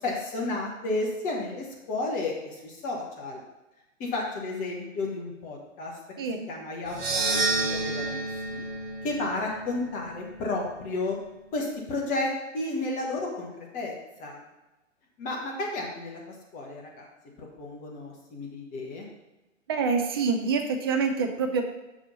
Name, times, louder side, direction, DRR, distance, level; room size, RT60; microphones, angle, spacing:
voice 1, 0.0-3.4 4.0-5.9 6.5-8.2 8.4-8.6 9.0-11.2 11.5-14.4 15.2-16.2 16.5-17.1 17.4-19.1, left 2 dB, 20° left, -1 dB, 1.2 m, -32 dB
sound 1, 6.9-11.2, right 3 dB, 40° right, 2.4 m, -31 dB
voice 2, 19.7-21.6, right 5 dB, 20° right, 4 dB, 0.4 m, -26 dB
6.2 x 4.2 x 5.4 m, 1.0 s
hypercardioid pair, 135°, 39 cm